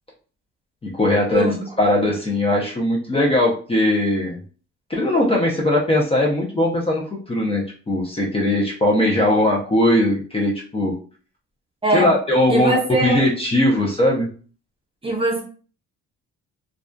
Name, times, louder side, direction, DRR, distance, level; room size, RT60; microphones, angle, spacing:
voice 1, 0.8-4.4 4.9-10.9 11.9-14.3, left 1 dB, 20° left, -3 dB, 0.5 m, -20 dB
voice 2, 1.3-1.6 11.8-12.1 12.5-13.2 15.0-15.4, right 2 dB, 20° right, 0 dB, 0.8 m, -21 dB
2.5 x 2.3 x 2.2 m, 0.40 s
cardioid pair, 90°, 30 cm